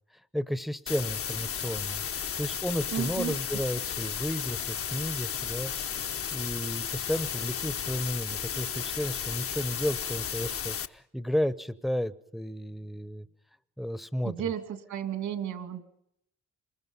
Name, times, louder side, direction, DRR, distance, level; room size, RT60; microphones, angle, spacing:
voice 1, 0.3-13.3 13.8-14.3, equal, ahead, 14 dB, 0.8 m, -33 dB
sound 1, 0.9-10.9, left 8 dB, 50° left, 1.0 m, -34 dB
voice 2, 2.9-3.4 14.2-15.8, right 9 dB, 75° right, 10 dB, 2.3 m, -33 dB
26.5 x 21.5 x 5.5 m, 0.77 s
cardioid pair, 90°, 30 cm